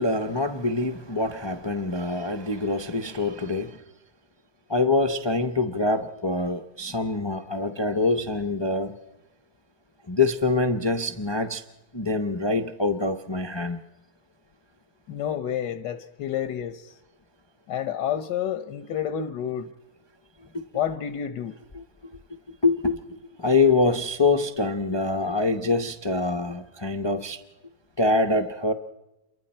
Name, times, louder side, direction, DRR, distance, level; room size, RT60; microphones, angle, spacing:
voice 1, 0.0-3.8 4.7-8.9 10.1-11.6 11.9-13.8 21.7-21.8 22.6-23.0 23.4-27.4 28.0-28.7, left 3 dB, 25° left, 0.5 m, -25 dB
voice 2, 15.1-16.9 17.7-19.7 20.7-21.5, left 9 dB, 85° left, 1.5 m, -29 dB
28.5 x 23.5 x 4.4 m
omnidirectional pair, 1.8 m